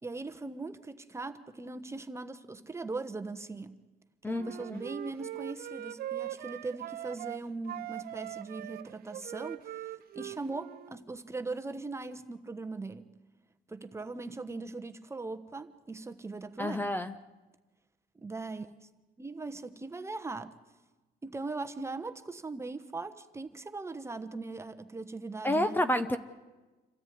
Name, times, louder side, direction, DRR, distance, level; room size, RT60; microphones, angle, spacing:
voice 1, 0.0-3.8 4.3-13.1 13.7-16.9 18.2-18.9 19.2-20.6 21.2-25.8, right 3 dB, 15° right, 1.1 m, -40 dB
voice 2, 4.2-4.8 16.6-17.1 25.4-26.2, left 1 dB, 10° left, 0.9 m, -29 dB
Wind instrument woodwind instrument, 4.3-7.4 7.7-11.0, right 13 dB, 65° right, 0.8 m, -41 dB
27.5 x 13.5 x 9.4 m
cardioid pair, 110°, 17 cm